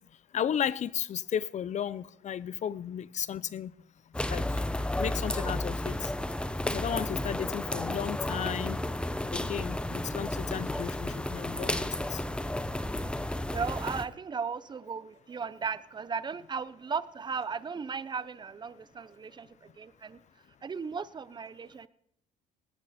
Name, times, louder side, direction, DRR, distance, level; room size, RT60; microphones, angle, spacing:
voice 1, 0.3-3.7 4.3-4.6 5.0-6.1 6.6-8.8 9.3-12.2, left 9 dB, 45° left, 0.7 m, -34 dB
sound 1, 4.1-14.1, left 1 dB, 5° left, 0.9 m, -32 dB
voice 2, 13.5-20.2 20.6-21.9, right 5 dB, 25° right, 0.8 m, -36 dB
19.0 x 15.5 x 4.3 m
cardioid pair, 110°, 17 cm